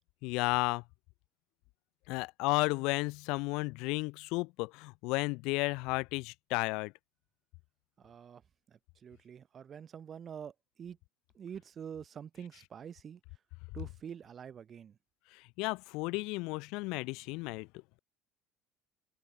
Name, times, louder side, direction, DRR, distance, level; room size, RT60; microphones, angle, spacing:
voice 1, 0.2-0.8 2.1-6.9 15.6-17.7, left 25 dB, 60° left, 0.5 m, -33 dB
voice 2, 8.0-8.4 8.7-10.5 10.8-11.0 11.3-13.2 13.7-15.0, right 8 dB, 40° right, 0.9 m, -46 dB
figure-of-eight pair, 60°, 0 cm